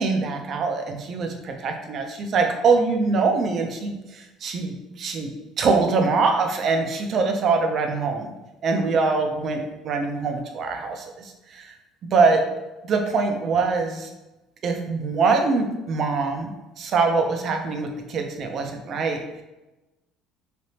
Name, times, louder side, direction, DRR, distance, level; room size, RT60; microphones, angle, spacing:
voice 1, 0.0-5.3 5.6-8.3 8.6-11.7 12.1-12.4 12.8-14.1 14.6-19.4, right 4 dB, 50° right, 4 dB, 0.5 m, -23 dB
3.3 x 2.9 x 2.8 m, 1.0 s
cardioid pair, 105°, 0 cm